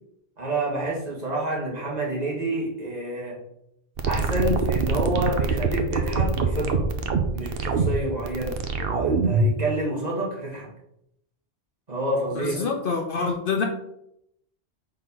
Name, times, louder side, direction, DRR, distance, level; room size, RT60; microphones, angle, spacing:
voice 1, 0.4-3.4 4.0-6.9 7.3-10.7 11.9-12.6, right 1 dB, 35° right, -4 dB, 1.9 m, -28 dB
sound 1, 4.0-9.6, right 4 dB, 60° right, 0.9 m, -24 dB
voice 2, 12.3-13.6, left 5 dB, 55° left, 3 dB, 0.9 m, -26 dB
4.5 x 4.2 x 5.5 m, 0.77 s
omnidirectional pair, 1.2 m